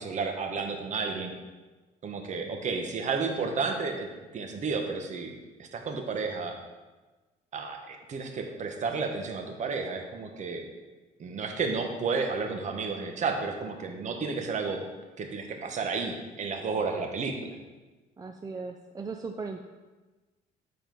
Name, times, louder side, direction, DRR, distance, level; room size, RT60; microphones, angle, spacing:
voice 1, 0.0-1.3 2.0-4.1 4.3-5.3 5.6-6.6 7.5-10.6 11.2-14.8 15.2-17.5, right 4 dB, 45° right, 4 dB, 1.2 m, -32 dB
voice 2, 18.2-19.6, right 4 dB, 20° right, 4 dB, 0.5 m, -37 dB
9.5 x 4.2 x 5.3 m, 1.2 s
cardioid pair, 110°, 17 cm